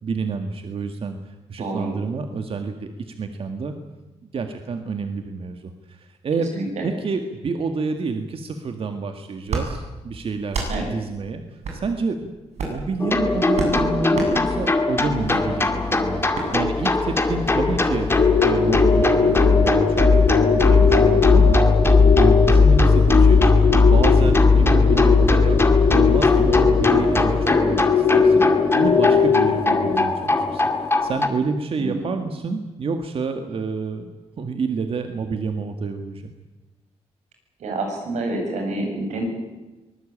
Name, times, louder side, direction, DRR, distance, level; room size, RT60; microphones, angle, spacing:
voice 1, 0.0-3.7 4.2-12.3 12.7-21.6 22.1-23.5 23.9-25.6 25.9-34.1 34.4-36.3, right 4 dB, 55° right, 6 dB, 1.9 m, -29 dB
voice 2, 1.6-1.9 6.5-6.8 10.7-10.9 20.7-21.0 31.8-32.1 37.6-39.2, right 2 dB, 90° right, 2 dB, 7.8 m, -28 dB
sound 1, 9.5-9.7 10.5-10.7 11.6-11.8 12.5-12.8 13.5-13.8 14.1-14.3 15.3-15.4 16.3-16.5, right 4 dB, 75° right, 7.9 m, -26 dB
sound 2, 13.0-31.3, left 3 dB, 20° left, 2.3 m, -18 dB
sound 3, 18.1-30.0, left 6 dB, 80° left, 4.8 m, -21 dB
24.0 x 20.0 x 8.8 m, 1.1 s
cardioid pair, 115°, 11 cm